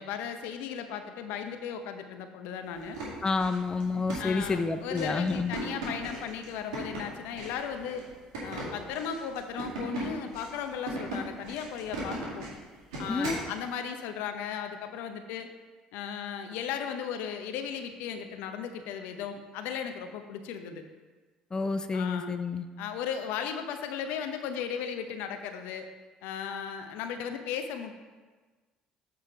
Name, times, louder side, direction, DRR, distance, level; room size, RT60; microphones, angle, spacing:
voice 1, 0.0-3.0 4.2-8.0 8.4-12.5 13.0-15.5 15.9-20.8 21.9-22.4 22.8-25.9 26.2-28.0, left 7 dB, 75° left, 7 dB, 0.7 m, -36 dB
sound 1, 2.7-13.5, right 2 dB, 85° right, 2.0 m, -39 dB
voice 2, 3.2-5.6 13.1-13.4 21.5-22.7, left 4 dB, 25° left, 9 dB, 0.5 m, -29 dB
7.8 x 4.8 x 4.6 m, 1.3 s
hypercardioid pair, 65°, 3 cm